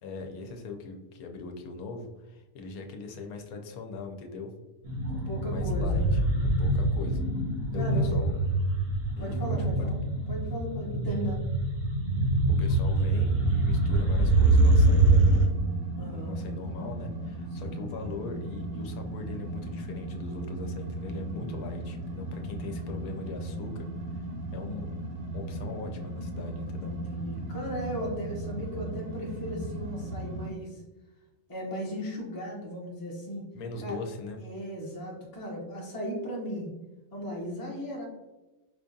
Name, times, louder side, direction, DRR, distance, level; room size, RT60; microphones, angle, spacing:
voice 1, 0.0-4.5 5.5-7.2 7.7-8.3 9.2-9.4 9.8-9.9 12.6-15.6 16.1-23.9 24.5-24.9 25.3-26.9 33.5-34.4, left 3 dB, 85° left, 3 dB, 1.1 m, -40 dB
sound 1, 4.8-15.5, right 2 dB, 55° right, 0.7 m, -24 dB
voice 2, 5.1-6.2 7.7-8.2 9.2-11.4 16.0-16.4 17.5-17.8 21.2-21.7 26.8-30.8 31.5-33.4 33.8-34.0 34.4-36.7 37.1-38.1, equal, 20° left, -2 dB, 0.5 m, -37 dB
sound 2, 13.3-30.5, right 1 dB, 75° right, 1.0 m, -37 dB
4.7 x 2.3 x 2.6 m, 1.1 s
omnidirectional pair, 1.5 m